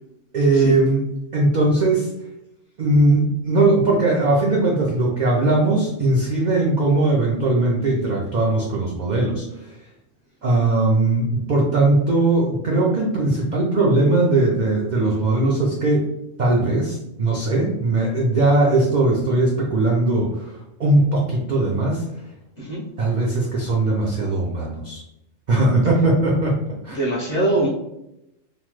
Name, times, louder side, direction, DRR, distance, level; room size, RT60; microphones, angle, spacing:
voice 1, 0.3-1.0 1.3-2.1 2.8-9.8 10.4-16.1 16.4-22.2 23.0-25.0 25.5-26.5 26.8-27.0, right 2 dB, 70° right, -3 dB, 0.4 m, -19 dB
voice 2, 26.9-27.7, right 2 dB, 45° left, -6 dB, 0.5 m, -22 dB
2.9 x 2.1 x 3.0 m, 0.87 s
omnidirectional pair, 1.3 m